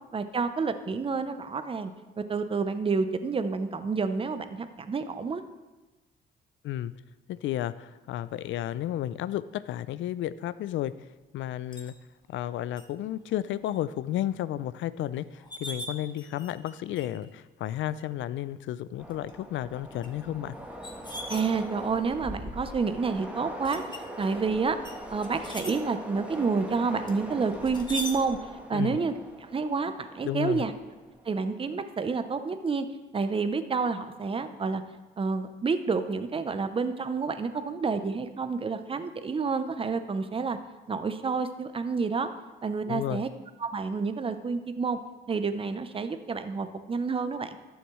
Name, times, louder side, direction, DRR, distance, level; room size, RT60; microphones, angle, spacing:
voice 1, 0.1-1.9 2.2-5.4 21.3-24.8 25.1-28.4 28.7-29.1 29.4-30.7 31.3-32.9 33.1-34.8 35.2-40.6 40.9-42.3 42.6-43.3 43.6-45.0 45.3-47.6, right 4 dB, 30° right, 10 dB, 0.6 m, -29 dB
voice 2, 7.3-11.1 11.3-11.9 12.3-20.6 28.7-29.0 30.2-30.6 42.9-43.2, left 12 dB, 75° left, 16 dB, 0.4 m, -32 dB
sound 1, 11.7-11.9 12.8-12.9 13.3-13.7 14.1-14.2 15.0-15.1 15.4-16.7 17.0-17.3 18.0-18.1 18.9-19.3 20.0-22.0 22.6-23.0 23.6-24.4 24.8-25.7 27.1-28.2, left 1 dB, 20° left, 1.2 m, -40 dB
Train, 19.0-31.2, equal, 5° right, 1.2 m, -42 dB
12.0 x 7.1 x 3.1 m, 1.2 s
cardioid pair, 90°, 20 cm